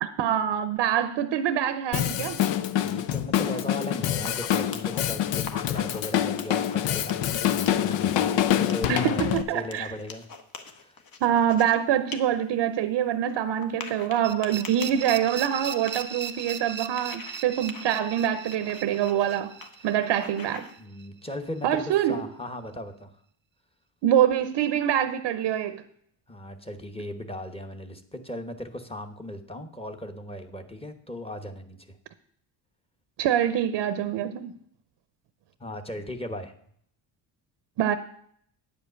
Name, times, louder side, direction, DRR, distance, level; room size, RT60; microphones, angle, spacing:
voice 1, 0.0-2.4 8.9-9.9 11.2-19.6 19.8-20.7 21.6-22.2 24.0-25.8 33.2-34.5 37.8-38.0, right 10 dB, 70° right, 0.7 m, -25 dB
Drum kit, 1.9-9.4, left 11 dB, 70° left, 0.7 m, -26 dB
voice 2, 2.8-10.3 10.6-11.0 19.8-19.9 20.8-21.8 22.1-23.1 26.3-32.0 35.6-36.5, left 1 dB, 10° left, 1.1 m, -37 dB
sound 1, 4.2-5.1 5.4-6.1 6.4-8.3 8.7-11.7 12.1-12.2 12.5-12.6 13.6-16.5 17.0-17.4 17.7-18.0 18.5-19.3 19.6-19.7 20.0-20.7, left 5 dB, 50° left, 1.3 m, -43 dB
sound 2, 14.2-21.0, right 7 dB, 25° right, 0.6 m, -38 dB
9.4 x 5.2 x 8.1 m
cardioid pair, 100°, 45 cm